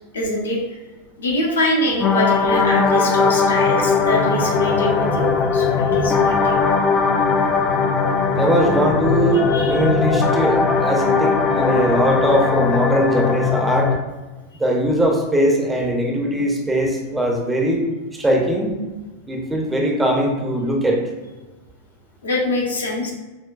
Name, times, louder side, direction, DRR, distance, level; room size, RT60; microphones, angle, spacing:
voice 1, 0.1-0.6 1.2-6.6 9.5-9.8 22.2-23.1, left 1 dB, 70° left, 0 dB, 0.7 m, -23 dB
sound 1, 2.0-14.0, left 5 dB, 25° left, 0.3 m, -19 dB
voice 2, 8.3-13.9 14.5-17.8 18.1-18.8 19.3-21.0, right 1 dB, 10° right, 0 dB, 0.6 m, -20 dB
6.0 x 2.2 x 2.3 m, 1.2 s
figure-of-eight pair, 90°, 0 cm